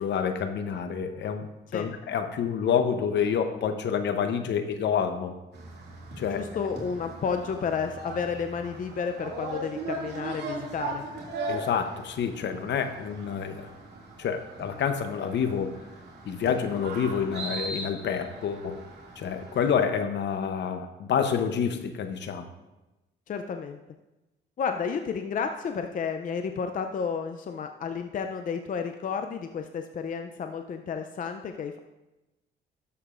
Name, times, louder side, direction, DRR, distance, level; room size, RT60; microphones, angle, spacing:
voice 1, 0.0-5.4 6.2-6.4 11.5-13.7 14.2-15.7 16.2-18.8 19.2-22.5, left 7 dB, 65° left, 8 dB, 0.8 m, -28 dB
sound 1, 5.5-19.7, right 2 dB, 60° right, 2.3 m, -39 dB
voice 2, 6.3-11.0 23.3-23.8 24.6-31.8, left 6 dB, 40° left, 6 dB, 0.5 m, -31 dB
12.5 x 6.7 x 2.5 m, 1.0 s
cardioid pair, 90°, 20 cm